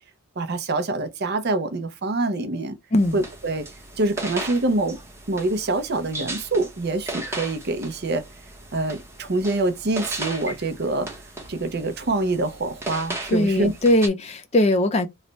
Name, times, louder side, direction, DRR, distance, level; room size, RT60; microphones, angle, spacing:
voice 1, 0.4-2.8 3.1-3.7 4.0-5.0 5.3-8.2 8.7-11.1 11.5-13.7, right 2 dB, 45° right, 0.6 m, -25 dB
voice 2, 2.9-3.2 13.3-15.1, left 1 dB, 30° left, 0.4 m, -20 dB
sound 1, 2.9-14.1, right 2 dB, 10° right, 0.8 m, -36 dB
3.2 x 2.1 x 3.9 m
head